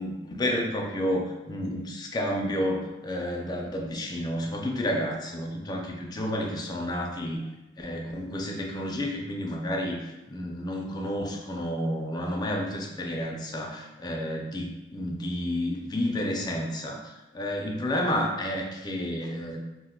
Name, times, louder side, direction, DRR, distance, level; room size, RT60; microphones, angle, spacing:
voice 1, 0.0-7.4 7.8-19.6, equal, 25° left, 1 dB, 0.4 m, -30 dB
2.5 x 2.2 x 3.5 m, 1.1 s
head